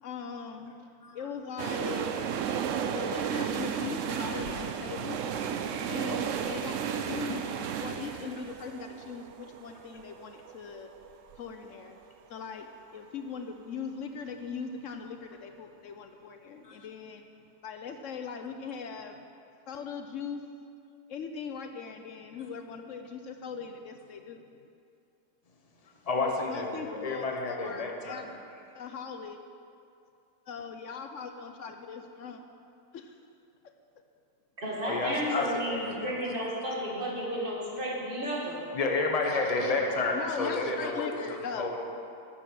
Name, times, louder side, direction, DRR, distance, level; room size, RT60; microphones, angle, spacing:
voice 1, 0.0-0.9 1.1-2.3 2.9-5.2 5.9-10.9 11.4-12.0 12.3-17.3 17.6-19.2 19.7-20.5 21.1-24.4 26.2-28.2 28.7-29.4 30.5-32.4 32.9-33.2 40.1-41.8, left 6 dB, 65° left, 6 dB, 0.8 m, -40 dB
sound 1, 1.6-11.4 11.7-11.8, right 7 dB, 65° right, 0.8 m, -33 dB
voice 2, 26.0-28.2 34.8-36.3 38.7-41.8, left 3 dB, 25° left, 1 dB, 1.0 m, -31 dB
voice 3, 34.6-38.6, equal, 30° right, -4 dB, 2.4 m, -32 dB
9.2 x 9.1 x 6.5 m, 2.5 s
omnidirectional pair, 1.8 m